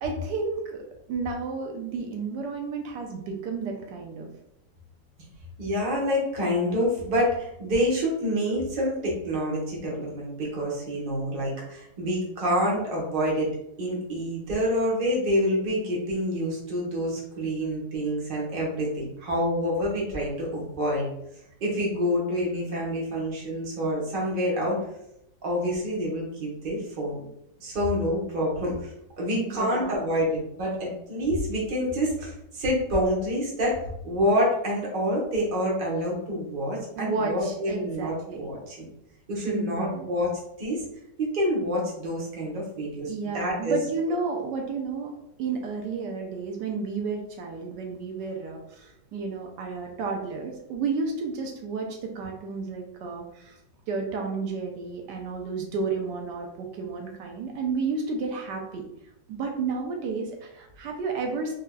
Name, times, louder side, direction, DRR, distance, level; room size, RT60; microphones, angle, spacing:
voice 1, 0.0-0.8 1.1-4.3 29.3-30.1 37.0-38.5 39.5-40.1 43.0-45.1 45.4-53.6 53.9-58.8 59.3-61.5, right 4 dB, 80° right, 2 dB, 1.2 m, -32 dB
voice 2, 5.6-13.5 13.8-21.1 21.6-24.8 25.4-27.3 27.6-33.8 34.0-38.9 39.3-40.8 41.2-43.8, equal, 35° right, -4 dB, 0.9 m, -27 dB
3.4 x 3.4 x 2.2 m, 0.79 s
omnidirectional pair, 1.9 m